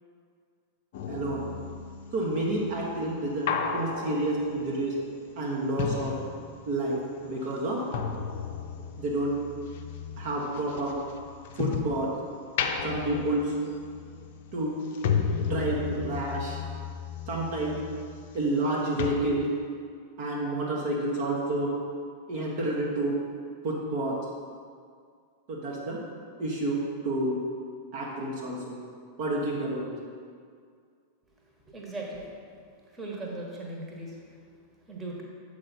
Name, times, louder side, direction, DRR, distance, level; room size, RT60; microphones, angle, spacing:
sound 1, 0.9-6.9 7.2-12.0 12.4-18.7 19.0-19.1, left 6 dB, 50° left, 0.5 m, -34 dB
voice 1, 1.1-1.4 2.1-5.0 5.4-6.1 6.7-7.8 9.0-9.4 10.2-11.0 11.5-12.1 12.8-13.5 14.5-14.8 15.4-16.6 17.3-17.8 18.3-19.5 20.2-21.7 22.3-23.1 23.6-24.2 25.5-26.0 26.4-27.4 27.9-28.8 29.2-30.0, right 1 dB, 50° right, -4 dB, 1.0 m, -29 dB
voice 2, 31.7-32.3 32.9-34.1 34.9-35.2, right 2 dB, 20° right, -2 dB, 1.3 m, -38 dB
7.6 x 4.7 x 4.1 m, 2.2 s
figure-of-eight pair, 90°, 0 cm